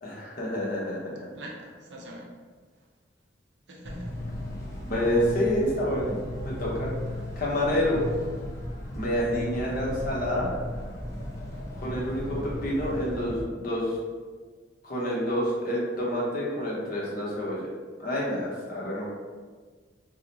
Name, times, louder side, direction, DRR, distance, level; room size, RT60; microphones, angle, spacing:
voice 1, 0.0-1.3 4.9-6.2 6.4-6.9 7.4-8.0 8.9-10.5 11.8-14.0 14.8-17.7 18.0-19.0, equal, 50° left, -5 dB, 0.8 m, -28 dB
voice 2, 1.3-2.3 3.7-4.1, right 1 dB, 75° right, -2 dB, 0.7 m, -42 dB
sound 1, 3.8-13.4, left 1 dB, 15° left, 0.6 m, -36 dB
2.8 x 2.1 x 3.9 m, 1.5 s
head